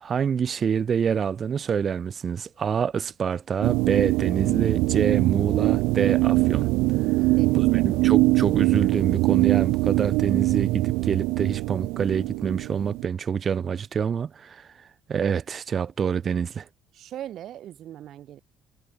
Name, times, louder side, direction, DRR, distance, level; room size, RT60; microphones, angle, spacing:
voice 1, 0.0-6.7 7.8-14.7 15.1-16.6, right 7 dB, 35° right, 1.8 m, -26 dB
sound 1, 3.6-13.1, right 21 dB, 90° right, 1.1 m, -22 dB
voice 2, 7.1-7.9 16.9-18.4, right 12 dB, 55° right, 2.5 m, -40 dB
cardioid pair, 145°, 0 cm